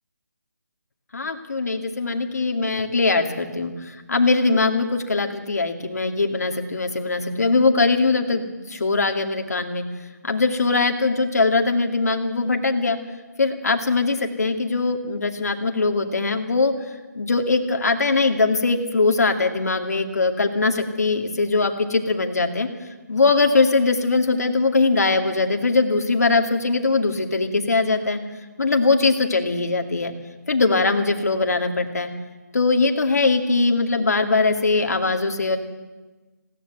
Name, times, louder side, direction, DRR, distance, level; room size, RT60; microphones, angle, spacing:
voice 1, 1.1-9.8 10.2-13.0 13.4-16.7 17.1-22.7 23.1-28.2 28.6-30.1 30.5-32.1 32.5-35.6, left 3 dB, 60° left, 5 dB, 2.5 m, -21 dB
19.0 x 16.5 x 8.1 m, 1.2 s
hypercardioid pair, 180°, 10 cm